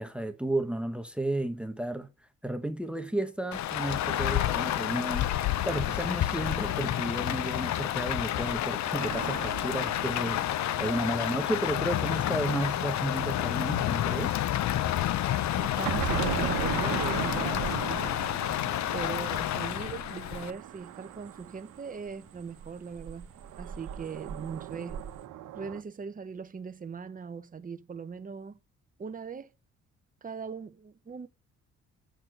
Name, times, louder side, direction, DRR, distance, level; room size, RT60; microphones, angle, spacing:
voice 1, 0.0-2.1 2.4-5.3 5.6-10.4 10.8-14.4, right 1 dB, 5° right, 1.0 m, -32 dB
Rain, 3.5-20.5, left 12 dB, 65° left, 0.7 m, -29 dB
sound 1, 9.0-11.8 15.9-22.1 23.4-25.8, right 11 dB, 85° right, 1.1 m, -37 dB
sound 2, 15.1-25.3, right 6 dB, 50° right, 1.3 m, -48 dB
voice 2, 15.6-18.3 18.9-23.2 23.6-25.0 25.5-28.6 29.0-29.5 30.2-31.3, right 5 dB, 30° right, 0.9 m, -40 dB
7.8 x 4.4 x 6.3 m
cardioid pair, 90°, 30 cm